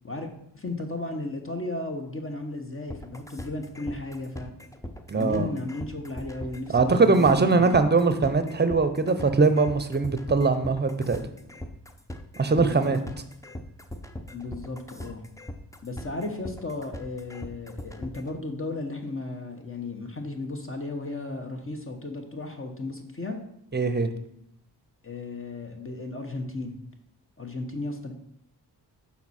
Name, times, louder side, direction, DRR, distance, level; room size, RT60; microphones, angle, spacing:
voice 1, 0.5-4.5 5.1-7.8 12.5-13.0 14.3-15.2 15.8-23.4 25.0-26.7 27.4-28.1, left 2 dB, 30° left, 4 dB, 1.0 m, -35 dB
sound 1, 2.9-18.3, left 1 dB, 10° left, 0.6 m, -40 dB
voice 2, 5.1-5.5 6.7-11.2 12.4-13.0 23.7-24.1, right 4 dB, 25° right, 9 dB, 0.7 m, -21 dB
5.9 x 4.2 x 4.2 m, 0.75 s
cardioid pair, 45°, 42 cm